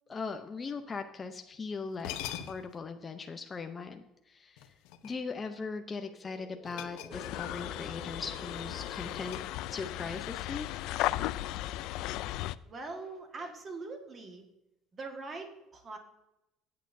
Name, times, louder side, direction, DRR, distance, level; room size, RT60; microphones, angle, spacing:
voice 1, 0.1-4.7 5.0-9.4 9.7-10.7, left 4 dB, 20° left, 5 dB, 0.6 m, -39 dB
sound 1, 1.5-1.6 1.9-2.8 4.6-5.5 6.6-7.6 7.9-8.1 8.6-10.0, left 11 dB, 85° left, 0.8 m, -44 dB
sound 2, 5.9-10.2, equal, 5° right, 1.8 m, -51 dB
sound 3, 7.1-12.6, left 16 dB, 65° left, 0.3 m, -36 dB
voice 2, 12.7-14.5 14.9-16.0, right 3 dB, 25° right, 4 dB, 1.6 m, -42 dB
16.0 x 8.5 x 2.6 m, 0.90 s
cardioid pair, 160°, 0 cm